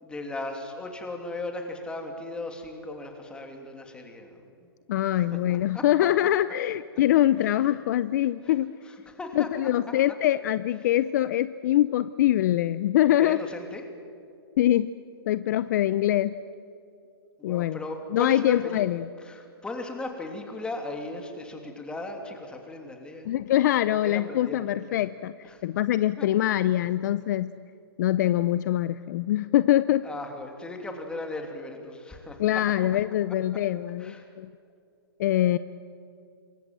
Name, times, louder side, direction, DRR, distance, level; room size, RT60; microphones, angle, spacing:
voice 1, 0.0-4.4 5.2-5.3 5.7-5.8 7.4-7.5 8.4-8.5 8.9-9.5 13.2-13.8 17.4-18.8 19.2-23.4 23.9-25.1 25.5-25.6 26.2-26.3 30.0-32.4 34.0-34.3, left 2 dB, 5° left, 4 dB, 2.9 m, -37 dB
voice 2, 4.9-8.8 9.3-13.4 14.6-14.9 15.3-16.3 17.4-17.8 18.1-19.1 23.3-25.4 25.6-27.5 28.0-30.1 32.4-34.5 35.2-35.6, left 13 dB, 45° left, 15 dB, 0.6 m, -24 dB
27.0 x 23.0 x 7.6 m, 2.6 s
hypercardioid pair, 145°, 13 cm